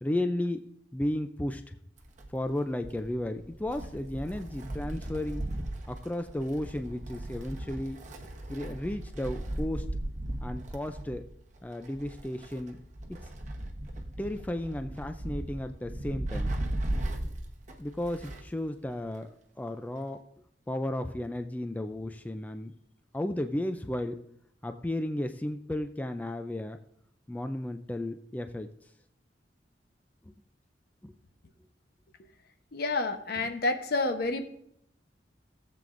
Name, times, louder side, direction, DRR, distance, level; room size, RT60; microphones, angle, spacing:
voice 1, 0.0-0.6 0.9-1.8 2.3-5.4 5.9-8.0 8.5-9.8 10.4-11.2 11.6-12.8 13.1-13.2 14.2-16.5 17.8-20.2 20.7-22.7 23.1-24.2 24.6-26.8 27.3-28.7 31.0-31.1, left 1 dB, 10° left, 8 dB, 0.3 m, -34 dB
Wind, 2.0-18.6 18.9-19.0 20.0-20.1, right 1 dB, 45° right, 1.0 m, -37 dB
voice 2, 32.7-34.5, left 2 dB, 60° left, 7 dB, 0.9 m, -29 dB
16.5 x 7.6 x 2.5 m, 0.71 s
head